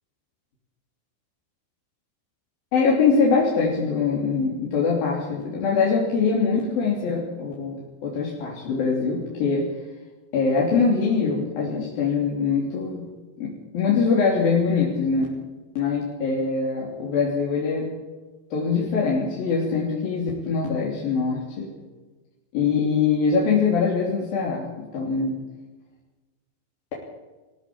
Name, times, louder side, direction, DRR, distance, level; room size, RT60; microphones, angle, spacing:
voice 1, 2.7-9.7 10.3-13.1 13.4-15.3 15.8-17.9 18.5-21.7 22.5-25.4, left 5 dB, 80° left, -3 dB, 5.0 m, -23 dB
19.5 x 16.0 x 8.8 m, 1.2 s
omnidirectional pair, 4.1 m